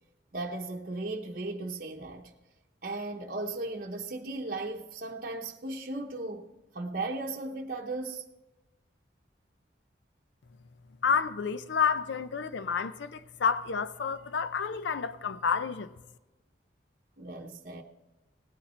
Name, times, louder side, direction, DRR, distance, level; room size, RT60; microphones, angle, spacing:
voice 1, 0.3-2.3 2.8-8.3 17.2-17.8, right 2 dB, 50° right, 0.9 m, -36 dB
voice 2, 11.0-15.9, left 6 dB, 75° left, 0.5 m, -29 dB
17.5 x 9.1 x 4.3 m
head